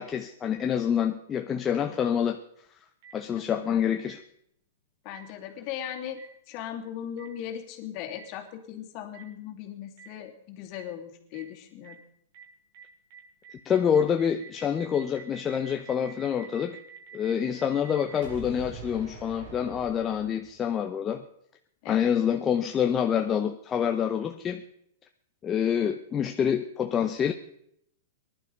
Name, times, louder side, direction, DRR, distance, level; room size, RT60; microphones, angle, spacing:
voice 1, 0.0-2.4 3.1-4.2 13.6-16.8 17.1-21.2 21.9-24.6 25.4-27.3, left 8 dB, 20° left, 5 dB, 0.9 m, -27 dB
Boom, 3.0-3.1 4.0-4.1 5.1-5.2 6.2-6.3 7.2-7.3 8.1-8.2 9.1-9.2 10.0-10.1 10.7-10.8 11.3-11.4 11.8-11.9 12.3-12.4 12.7-12.8 13.1-20.7, right 5 dB, 60° right, 6.8 m, -45 dB
voice 2, 3.3-4.0 5.0-6.2 6.5-12.0 21.8-22.1, left 10 dB, 45° left, 3 dB, 2.9 m, -38 dB
19.0 x 11.5 x 5.3 m, 0.73 s
hypercardioid pair, 130°, 0 cm